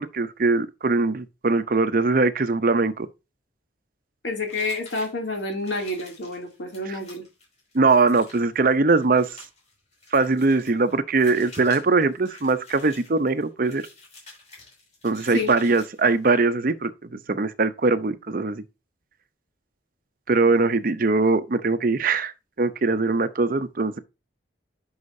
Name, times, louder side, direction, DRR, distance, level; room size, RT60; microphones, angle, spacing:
voice 1, 0.0-3.1 6.9-7.0 7.7-9.3 10.1-13.8 15.0-16.9 17.3-18.6 20.3-22.3 22.6-24.0, right 3 dB, 50° right, 0.6 m, -21 dB
voice 2, 4.2-7.2 15.3-15.5, left 2 dB, 75° left, 2.6 m, -29 dB
sound 1, 4.5-16.4, left 3 dB, 35° left, 5.2 m, -49 dB
9.6 x 5.6 x 2.7 m
head